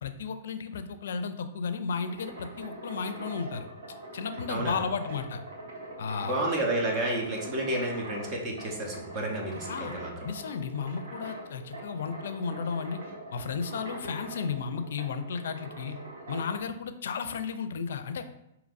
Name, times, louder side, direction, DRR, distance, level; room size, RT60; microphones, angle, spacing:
voice 1, 0.0-3.7 4.1-5.4 6.0-6.4 9.7-10.0 10.2-13.0 13.3-16.0 16.3-18.4, left 6 dB, 75° left, 9 dB, 0.4 m, -34 dB
sound 1, 2.0-16.6, right 1 dB, 75° right, 1.1 m, -43 dB
voice 2, 4.5-4.8 6.2-10.3, right 1 dB, 30° right, 0 dB, 0.8 m, -31 dB
5.2 x 2.8 x 2.5 m, 0.84 s
hypercardioid pair, 135°, 0 cm